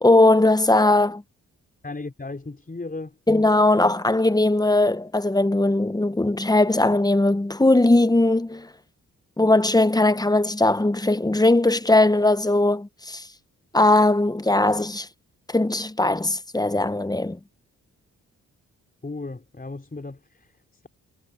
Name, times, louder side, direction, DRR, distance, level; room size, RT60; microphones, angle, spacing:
voice 1, 0.0-1.2 3.3-8.7 9.4-13.3 13.7-15.1 15.5-17.4, left 2 dB, 10° left, 1.0 m, -19 dB
voice 2, 1.8-3.2 19.0-20.9, left 3 dB, 25° left, 4.6 m, -36 dB
supercardioid pair, 55°, 32 cm